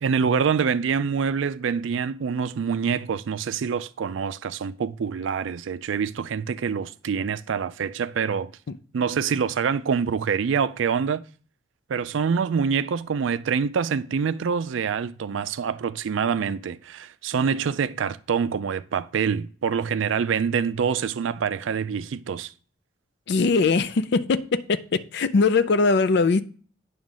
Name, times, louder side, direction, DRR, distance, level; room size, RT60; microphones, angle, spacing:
voice 1, 0.0-8.5 8.9-11.2 11.9-22.5, right 6 dB, 70° right, 0.4 m, -25 dB
voice 2, 23.3-26.4, left 4 dB, 60° left, 0.4 m, -21 dB
9.0 x 3.1 x 6.1 m
head